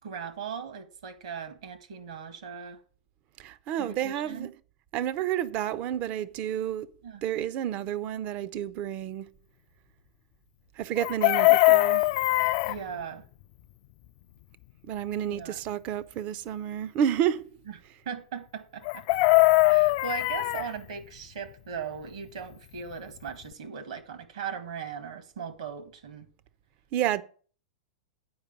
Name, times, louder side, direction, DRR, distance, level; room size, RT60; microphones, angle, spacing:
voice 1, 0.0-2.8 3.8-4.5 7.0-7.2 12.6-13.3 15.3-15.6 17.7-17.8 18.0-19.0 19.7-26.3, right 6 dB, 70° right, 1.6 m, -38 dB
voice 2, 3.4-4.5 4.9-6.9 7.2-9.3 10.8-12.2 14.8-17.5 26.9-27.2, right 10 dB, 40° right, 0.6 m, -30 dB
Chicken rooster, 11.0-12.8 18.9-20.7 22.9-23.0 23.3-23.5, left 23 dB, 50° left, 0.4 m, -21 dB
8.7 x 5.0 x 7.3 m
hypercardioid pair, 100°, 4 cm